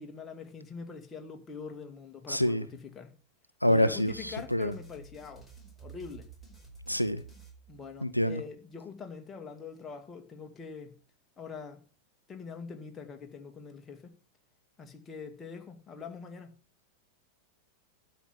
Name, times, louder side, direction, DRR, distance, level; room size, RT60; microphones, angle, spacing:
voice 1, 0.0-3.1 3.6-5.5 5.8-6.3 7.7-11.0 11.4-11.8 12.3-14.1 14.8-16.5, left 5 dB, 20° left, 2.1 m, -43 dB
voice 2, 2.3-2.6 3.6-4.1 4.5-4.7 6.9-7.2 8.0-8.4, equal, 90° left, 0.6 m, -26 dB
sound 1, 4.1-8.3, right 4 dB, ahead, 5.0 m, -51 dB
12.0 x 5.8 x 7.4 m
figure-of-eight pair, 90°, 0 cm